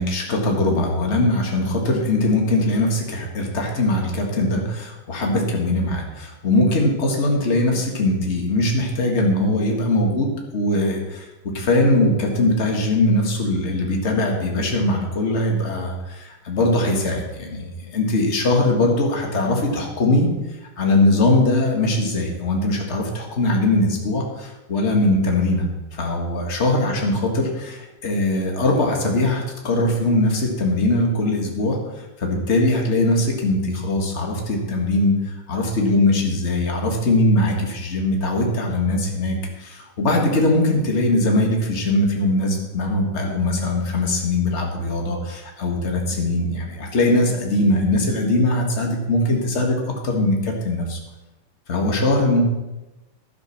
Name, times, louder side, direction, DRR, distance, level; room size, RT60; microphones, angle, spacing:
voice 1, 0.0-11.3 11.5-20.3 20.8-51.0 51.7-52.4, left 1 dB, 30° left, 1 dB, 1.2 m, -21 dB
12.0 x 7.8 x 6.0 m, 1.0 s
omnidirectional pair, 3.9 m